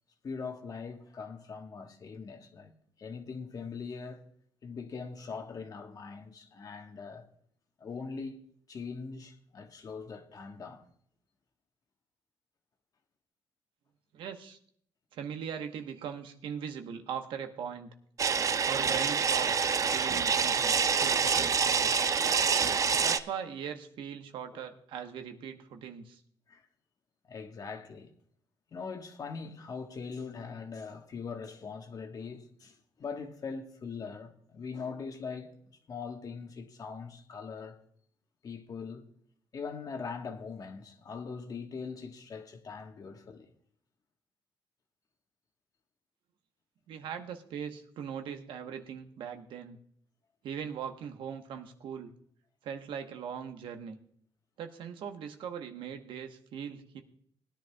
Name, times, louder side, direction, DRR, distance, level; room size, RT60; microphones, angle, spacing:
voice 1, 0.2-2.7 3.0-4.2 4.6-7.3 7.8-8.4 8.7-10.8 24.5-24.6 26.5-26.6 27.3-28.1 28.7-37.8 38.4-39.1 39.5-43.5, left 5 dB, 45° left, 1.3 m, -41 dB
voice 2, 14.1-14.6 15.1-17.9 18.7-22.0 23.0-26.2 46.9-49.8 50.4-52.1 52.6-54.0 54.6-57.0, right 8 dB, 85° right, 1.1 m, -40 dB
sound 1, 18.2-23.2, right 6 dB, 40° right, 0.5 m, -27 dB
20.0 x 10.0 x 2.3 m
cardioid pair, 105°, 8 cm